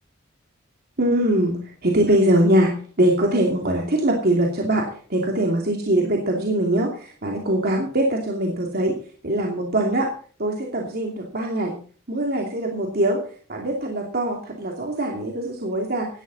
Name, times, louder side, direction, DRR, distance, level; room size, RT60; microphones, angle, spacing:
voice 1, 1.0-4.8 5.1-9.0 9.2-10.1 10.4-11.8 12.1-13.2 13.5-16.1, right 1 dB, 50° right, 0 dB, 2.7 m, -22 dB
17.0 x 12.5 x 4.1 m, 0.41 s
head